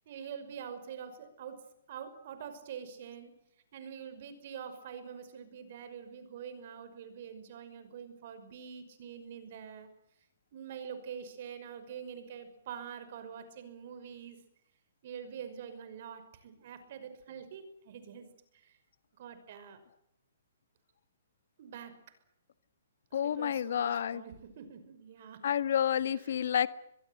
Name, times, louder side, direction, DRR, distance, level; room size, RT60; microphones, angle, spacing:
voice 1, 0.1-3.3 3.7-9.9 10.5-14.4 15.0-18.3 18.5-18.7 19.2-19.8 21.6-22.0 23.1-25.5 26.2-26.4, right 7 dB, 45° right, 11 dB, 5.8 m, -45 dB
voice 2, 23.1-24.2 25.4-26.7, left 9 dB, 60° left, 14 dB, 1.5 m, -29 dB
24.0 x 22.5 x 8.0 m, 0.79 s
hypercardioid pair, 160°, 0 cm